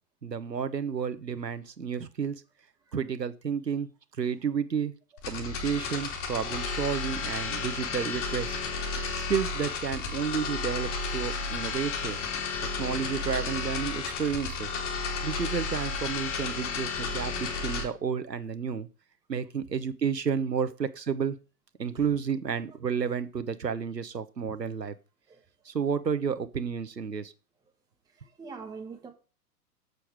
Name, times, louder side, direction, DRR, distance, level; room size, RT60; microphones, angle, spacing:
voice 1, 0.2-2.4 2.9-3.9 4.2-4.9 5.3-8.6 9.2-12.2 12.6-14.7 15.2-18.9 19.3-21.4 21.8-24.9 25.7-27.3, right 6 dB, 90° right, 1.0 m, -31 dB
sound 1, 5.2-17.8, left 4 dB, 50° left, 2.8 m, -33 dB
voice 2, 28.1-29.1, right 5 dB, 10° right, 1.0 m, -43 dB
7.1 x 6.5 x 4.7 m
figure-of-eight pair, 110°, 48 cm